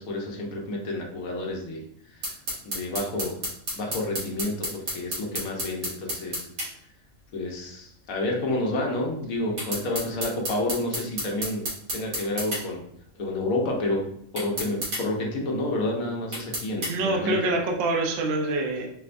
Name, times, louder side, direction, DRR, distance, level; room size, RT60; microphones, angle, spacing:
voice 1, 0.0-1.8 2.2-2.3 2.6-3.4 3.7-6.5 7.3-11.6 11.9-12.8 13.2-14.0 14.3-17.4, left 2 dB, 80° left, 0 dB, 1.2 m, -29 dB
sound 1, 2.2-6.7 9.6-12.6 14.4-15.0 16.3-16.9, equal, 85° right, 1.8 m, -31 dB
voice 2, 16.9-18.9, right 2 dB, 55° right, 1 dB, 0.7 m, -25 dB
4.5 x 3.3 x 2.5 m, 0.73 s
omnidirectional pair, 1.4 m